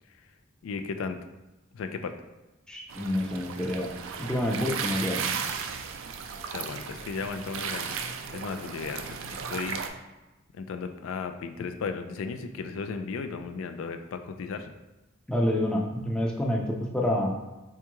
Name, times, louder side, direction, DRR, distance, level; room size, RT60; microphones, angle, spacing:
voice 1, 0.6-1.2 1.7-2.1 6.5-7.9 8.3-9.1 9.3-9.8 10.6-14.7, left 5 dB, 85° left, 8 dB, 0.3 m, -35 dB
voice 2, 2.7-3.9 4.2-5.3 15.3-17.3, left 1 dB, 5° left, -1 dB, 0.4 m, -28 dB
sound 1, 2.9-9.9, right 6 dB, 70° right, 0.3 m, -35 dB
4.4 x 2.3 x 2.9 m, 1.1 s
head